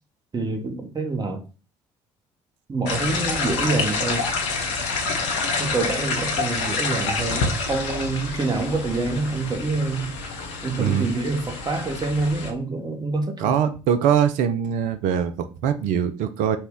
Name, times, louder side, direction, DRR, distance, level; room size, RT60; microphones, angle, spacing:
voice 1, 0.3-1.4 2.7-4.2 5.6-10.1 10.6-13.6, right 3 dB, 25° right, 1.0 m, -26 dB
sound 1, 2.9-12.5, left 4 dB, 70° left, 0.8 m, -27 dB
voice 2, 10.8-11.1 13.4-16.6, right 8 dB, 60° right, 0.4 m, -22 dB
4.2 x 2.2 x 3.6 m
figure-of-eight pair, 50°, 15 cm